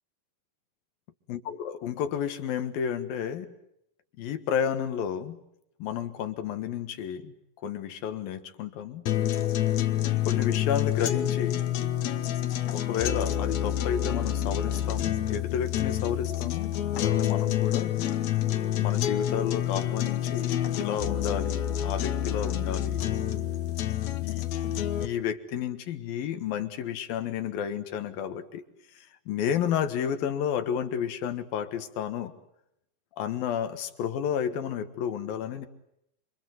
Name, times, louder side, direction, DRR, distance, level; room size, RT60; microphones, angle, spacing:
voice 1, 1.3-3.5 4.2-5.4 5.8-7.3 7.6-9.1 10.3-11.7 12.7-18.0 18.8-23.0 24.2-28.6 28.9-32.3 33.2-35.7, left 8 dB, 85° left, 9 dB, 3.4 m, -31 dB
sound 1, 9.1-25.1, left 12 dB, 60° left, 2.2 m, -28 dB
28.0 x 26.0 x 8.0 m, 0.79 s
omnidirectional pair, 4.0 m